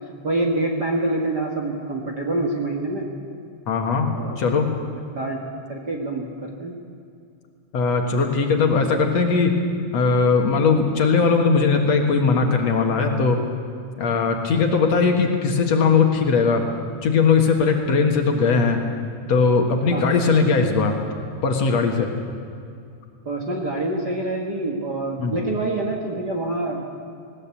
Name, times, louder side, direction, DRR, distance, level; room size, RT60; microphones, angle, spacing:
voice 1, 0.2-3.1 4.1-4.4 5.1-5.4 5.7-6.8 19.9-20.2 23.3-26.8, right 2 dB, 40° right, 0 dB, 1.8 m, -26 dB
voice 2, 3.7-4.1 4.4-4.7 7.7-9.6 9.9-13.4 14.0-16.6 17.0-18.8 19.3-21.0 21.4-22.1 25.2-25.3, left 4 dB, 60° left, 3 dB, 2.7 m, -19 dB
19.5 x 19.0 x 8.5 m, 2.4 s
omnidirectional pair, 3.7 m